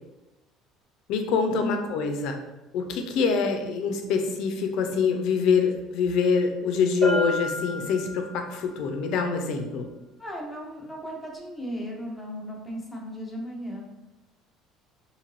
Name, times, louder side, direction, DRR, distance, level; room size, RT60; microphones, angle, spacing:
voice 1, 1.1-2.4 2.7-9.9, left 5 dB, 65° left, 5 dB, 0.4 m, -25 dB
Bell, 7.0-8.6, right 1 dB, 60° right, 1.3 m, -30 dB
voice 2, 10.2-13.8, equal, 5° left, -2 dB, 0.6 m, -35 dB
2.6 x 2.5 x 3.1 m, 1.0 s
cardioid pair, 150°, 0 cm